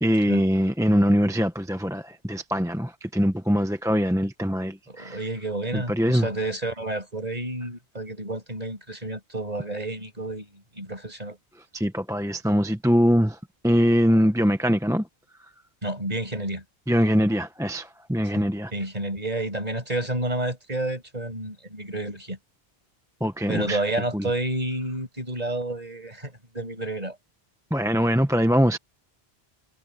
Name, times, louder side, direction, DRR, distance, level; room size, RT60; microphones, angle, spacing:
voice 1, 0.0-5.2 5.7-6.3 11.7-13.4 13.6-15.0 16.9-18.7 23.2-23.8 24.1-24.3 27.7-28.8, equal, 5° right, 1.0 m, -22 dB
voice 2, 4.9-11.4 15.8-16.6 18.3-22.4 23.5-27.2, right 2 dB, 40° right, 6.4 m, -30 dB
omnidirectional pair, 1.1 m